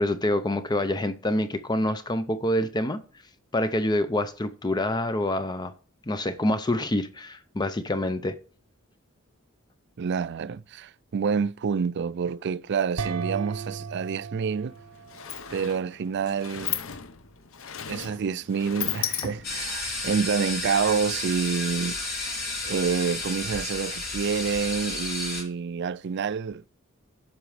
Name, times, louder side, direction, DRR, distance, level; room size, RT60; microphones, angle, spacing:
voice 1, 0.0-3.0 3.5-5.7 6.1-8.4, left 1 dB, 20° left, 0.5 m, -26 dB
voice 2, 10.0-14.7 15.5-16.8 17.9-22.4 22.6-26.6, right 6 dB, 55° right, 0.4 m, -28 dB
sound 1, 13.0-15.7, right 5 dB, 80° right, 0.9 m, -35 dB
Sliding door, 14.4-14.5 14.8-19.7, left 9 dB, 70° left, 0.8 m, -35 dB
sound 2, 19.4-25.4, left 2 dB, 50° left, 4.4 m, -32 dB
10.5 x 6.0 x 4.9 m
head